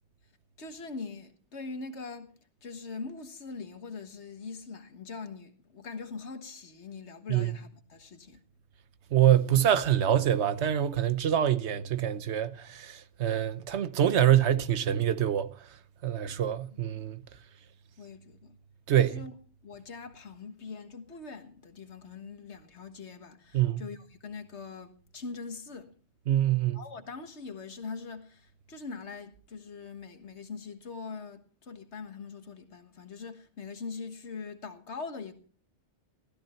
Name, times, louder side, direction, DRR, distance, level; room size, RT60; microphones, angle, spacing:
voice 1, 0.6-2.3 2.6-8.4 16.7-16.8 18.0-18.6 19.0-19.4 19.6-25.9 26.7-35.3, left 4 dB, 70° left, 1.7 m, -42 dB
voice 2, 9.1-15.5 16.0-17.2 18.9-19.2 23.5-23.8 26.3-26.8, right 10 dB, 70° right, 1.1 m, -25 dB
15.5 x 13.5 x 4.3 m
omnidirectional pair, 1.2 m